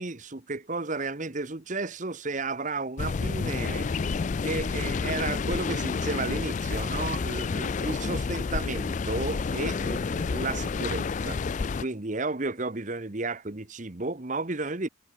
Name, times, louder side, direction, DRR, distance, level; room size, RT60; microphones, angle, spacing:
voice 1, 0.0-3.9 4.4-11.5 11.8-14.9, right 3 dB, 40° right, 1.2 m, -33 dB
sound 1, 3.0-11.8, left 4 dB, 35° left, 0.3 m, -29 dB
head